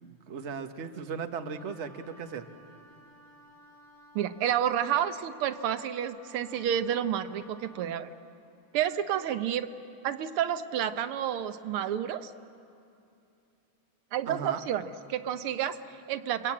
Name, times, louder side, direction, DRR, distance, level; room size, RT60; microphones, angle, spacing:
voice 1, 0.0-2.5 14.3-14.6, right 6 dB, 40° right, 7 dB, 1.1 m, -37 dB
Wind instrument woodwind instrument, 1.5-7.9, left 1 dB, 20° right, 5.4 m, -56 dB
voice 2, 4.2-8.1 8.7-9.7 10.0-12.3 14.1-16.5, right 10 dB, 90° right, 11 dB, 1.8 m, -30 dB
29.5 x 22.5 x 8.7 m, 2.7 s
omnidirectional pair, 2.3 m